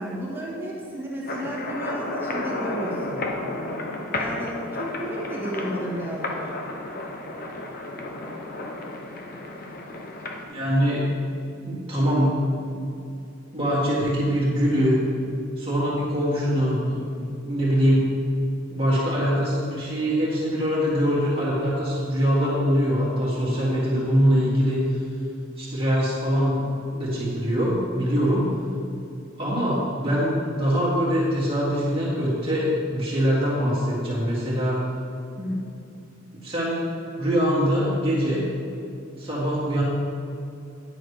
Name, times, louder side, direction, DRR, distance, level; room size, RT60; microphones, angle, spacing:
voice 1, 0.0-3.3 4.1-6.5 35.4-35.6, right 1 dB, 10° right, -5 dB, 1.7 m, -32 dB
sound 1, 1.3-10.5, left 2 dB, 45° left, 1.0 m, -32 dB
voice 2, 10.4-11.1 11.6-12.3 12.6-12.8 13.5-15.0 15.6-18.0 18.7-24.8 25.6-26.7 26.9-28.5 29.4-34.8 36.3-36.9 37.2-38.4 39.2-39.8, equal, 30° right, -7 dB, 1.9 m, -23 dB
9.8 x 6.3 x 4.9 m, 2.6 s
head